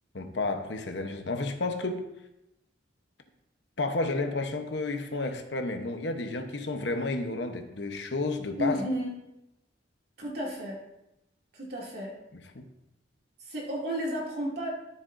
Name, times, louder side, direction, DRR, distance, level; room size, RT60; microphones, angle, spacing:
voice 1, 0.1-2.0 3.8-8.8 12.3-12.6, left 2 dB, 70° left, 6 dB, 1.0 m, -31 dB
voice 2, 8.6-9.2 10.2-10.8 11.5-12.2 13.4-14.7, equal, 60° right, -3 dB, 2.6 m, -32 dB
13.0 x 7.5 x 2.6 m, 0.88 s
head